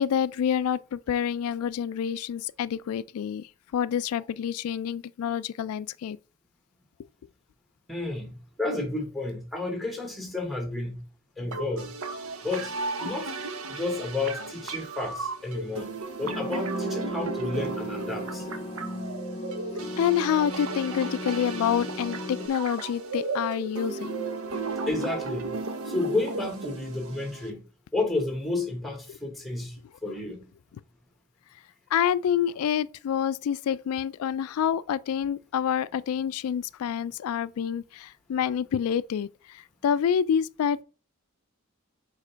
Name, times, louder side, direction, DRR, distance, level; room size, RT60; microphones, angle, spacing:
voice 1, 0.0-3.5 3.7-6.2 20.0-24.2 31.9-39.3 39.5-40.8, left 8 dB, 85° left, 0.3 m, -27 dB
voice 2, 7.9-11.0 11.4-11.9 12.4-13.3 13.7-15.9 16.2-18.5 24.9-25.5 25.9-27.6 27.9-29.8 30.0-30.5, left 2 dB, ahead, 1.2 m, -31 dB
sound 1, 11.5-27.5, right 3 dB, 80° right, 0.9 m, -35 dB
sound 2, 16.2-22.5, left 1 dB, 30° left, 0.5 m, -37 dB
5.0 x 4.1 x 5.5 m
head